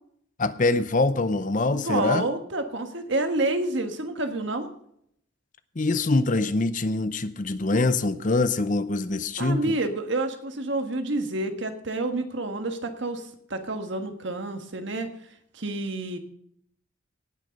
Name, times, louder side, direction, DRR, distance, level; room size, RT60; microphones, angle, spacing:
voice 1, 0.4-2.3 5.8-9.6, left 2 dB, 40° left, 13 dB, 0.6 m, -24 dB
voice 2, 1.7-4.7 9.4-15.1 15.5-16.2, right 2 dB, 60° right, 6 dB, 1.6 m, -29 dB
18.0 x 6.5 x 5.3 m, 0.70 s
head